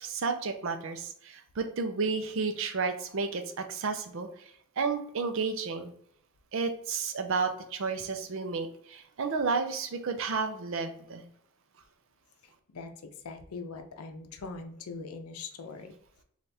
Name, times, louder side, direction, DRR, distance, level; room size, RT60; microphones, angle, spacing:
voice 1, 0.0-5.9 6.5-11.2, right 4 dB, 60° right, 6 dB, 0.5 m, -32 dB
voice 2, 12.7-15.9, left 4 dB, 85° left, 6 dB, 0.5 m, -42 dB
3.4 x 2.4 x 4.1 m, 0.65 s
head